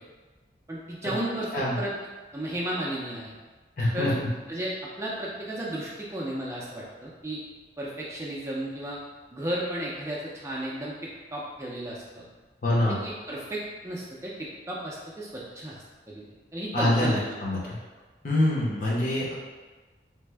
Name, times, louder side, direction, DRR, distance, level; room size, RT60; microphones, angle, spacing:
voice 1, 0.7-1.9 2.3-3.3 3.9-4.2 4.5-4.7 5.0-7.4 7.8-9.0 9.3-12.2 12.9-15.8 16.1-16.2 16.5-17.7, right 1 dB, 15° right, -5 dB, 0.4 m, -34 dB
voice 2, 3.8-4.3 12.6-13.0 16.7-17.8 18.2-19.3, left 1 dB, 50° left, -5 dB, 0.8 m, -25 dB
3.3 x 2.1 x 3.2 m, 1.3 s
head